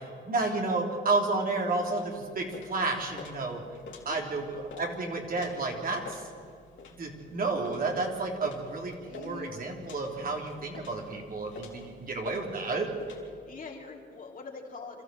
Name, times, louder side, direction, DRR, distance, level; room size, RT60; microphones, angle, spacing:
voice 1, 0.2-3.6 4.0-6.3 6.9-12.9, right 3 dB, 45° right, 1 dB, 3.3 m, -31 dB
sound 1, 1.8-13.2, left 4 dB, 70° left, 3.7 m, -49 dB
voice 2, 9.0-9.5 13.4-15.0, left 4 dB, 45° left, 0 dB, 3.5 m, -43 dB
26.5 x 13.5 x 7.7 m, 2.2 s
cardioid pair, 90°, 20 cm